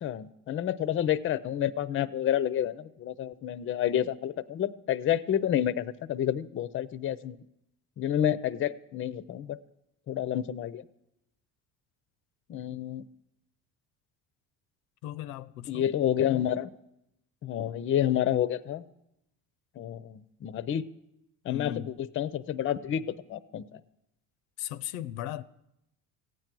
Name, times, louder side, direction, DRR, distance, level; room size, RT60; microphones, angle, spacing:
voice 1, 0.0-7.4 8.0-9.6 10.1-10.8 12.5-13.1 15.7-16.7 17.4-18.9 19.8-20.8 21.4-23.8, left 10 dB, 35° left, 0.5 m, -29 dB
voice 2, 15.0-15.9 21.5-21.9 24.6-25.4, left 12 dB, 90° left, 0.6 m, -37 dB
15.0 x 9.1 x 6.0 m
cardioid pair, 110°, 37 cm